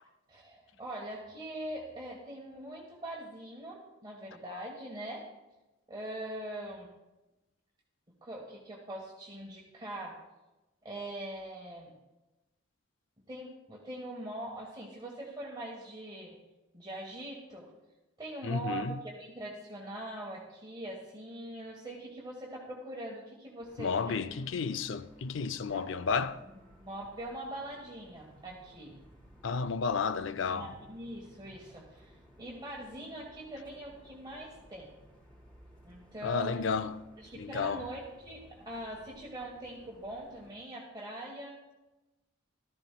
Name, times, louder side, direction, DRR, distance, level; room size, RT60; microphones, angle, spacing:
voice 1, 0.3-5.2 5.9-6.9 8.2-10.2 10.8-11.9 13.3-16.4 16.7-17.7 18.2-24.2 24.5-24.6 25.7-25.9 26.7-29.0 30.5-34.9 35.8-36.6 37.2-41.7, right 1 dB, 20° right, 1.3 m, -42 dB
voice 2, 18.4-19.0 23.8-26.4 29.4-30.7 36.2-37.0 37.4-37.8, left 5 dB, 65° left, 0.4 m, -32 dB
sound 1, 23.6-40.6, equal, 5° left, 2.9 m, -59 dB
14.5 x 13.0 x 2.2 m
head